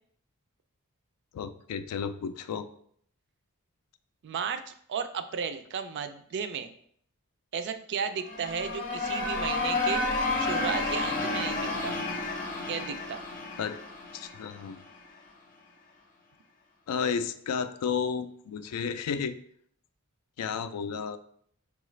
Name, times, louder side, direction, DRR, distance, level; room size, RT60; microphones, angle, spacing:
voice 1, 1.3-2.7 13.6-13.8 14.1-14.8 16.9-19.4 20.4-21.2, left 6 dB, 85° left, 11 dB, 0.3 m, -32 dB
voice 2, 4.2-6.7 7.5-10.0 10.4-12.0 12.7-13.2, right 6 dB, 50° right, 9 dB, 0.3 m, -34 dB
sound 1, 8.2-15.0, left 2 dB, 35° left, 0.7 m, -31 dB
5.5 x 2.4 x 3.1 m, 0.64 s
head